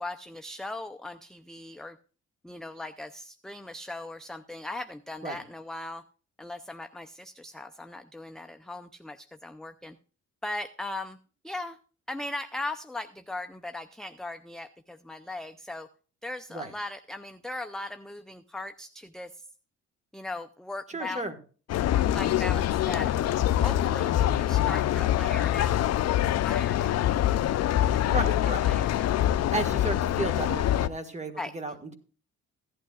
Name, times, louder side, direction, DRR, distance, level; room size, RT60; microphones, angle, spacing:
voice 1, 0.0-2.0 2.4-6.0 6.4-10.0 10.4-11.2 11.4-11.8 12.1-15.9 16.2-19.4 20.1-21.2 21.8-23.1 23.6-28.2 28.6-29.5 31.4-31.5, left 2 dB, ahead, 7 dB, 0.4 m, -39 dB
voice 2, 20.9-21.3 28.0-28.6 29.5-31.9, right 2 dB, 25° right, 8 dB, 1.6 m, -33 dB
sound 1, 21.7-30.9, left 12 dB, 60° left, 0.5 m, -25 dB
15.5 x 11.0 x 2.3 m, 0.39 s
cardioid pair, 90°, 30 cm